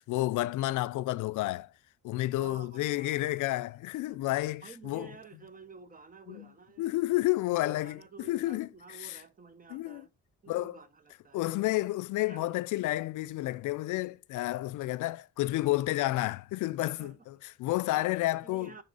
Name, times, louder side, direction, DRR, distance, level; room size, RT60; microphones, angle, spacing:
voice 1, 0.0-1.7 2.0-5.1 6.3-6.5 6.8-8.0 8.3-8.7 9.0-9.2 9.7-10.0 10.5-10.8 11.3-18.7, left 17 dB, 80° left, 0.5 m, -30 dB
voice 2, 2.3-3.6 4.6-7.0 7.4-10.1 10.4-11.6 12.2-12.5 17.0-17.3 17.8-18.8, right 5 dB, 30° right, 0.9 m, -51 dB
10.5 x 3.7 x 3.9 m
cardioid pair, 90°, 30 cm